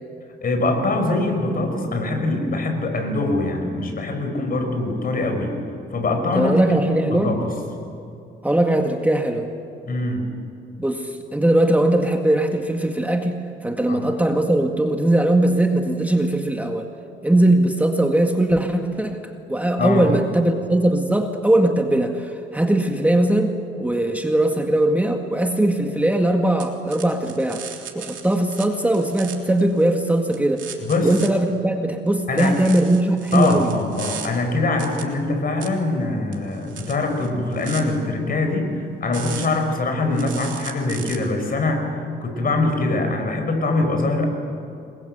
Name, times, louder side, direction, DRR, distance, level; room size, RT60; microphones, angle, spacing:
voice 1, 0.4-5.6 5.9-6.6 7.1-7.5 9.8-10.2 13.9-14.1 19.8-20.1 30.8-31.1 32.3-32.6 33.3-42.0 42.2-44.3, left 2 dB, 45° left, 5 dB, 6.1 m, -23 dB
voice 2, 6.3-7.4 8.4-9.5 10.8-16.9 17.2-30.7 31.0-33.7, right 1 dB, 5° right, 3 dB, 1.9 m, -20 dB
sound 1, 26.6-28.7 28.9-29.9 30.3-31.3 32.4-34.3 34.8-35.0 35.6-35.7 36.3-37.8 39.1-39.7 40.1-41.2, right 9 dB, 70° right, 3.4 m, -37 dB
27.0 x 22.0 x 8.1 m, 2.5 s
cardioid pair, 90°, 20 cm